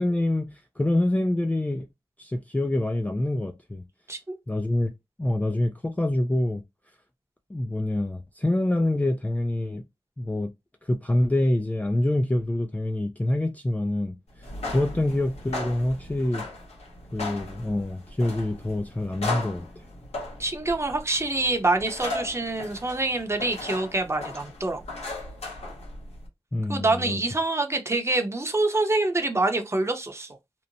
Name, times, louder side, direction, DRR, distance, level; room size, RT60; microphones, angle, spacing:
voice 1, 0.0-1.9 2.2-3.8 4.5-4.9 5.2-6.6 7.5-9.8 10.2-10.5 10.8-14.2 14.7-16.4 17.1-19.7 26.5-27.2, left 1 dB, 15° left, 0.3 m, -26 dB
sound 1, 14.4-26.3, left 2 dB, 75° left, 1.0 m, -37 dB
voice 2, 20.4-24.8 26.7-30.4, right 2 dB, 25° right, 0.7 m, -26 dB
2.8 x 2.0 x 2.6 m
cardioid pair, 55°, 11 cm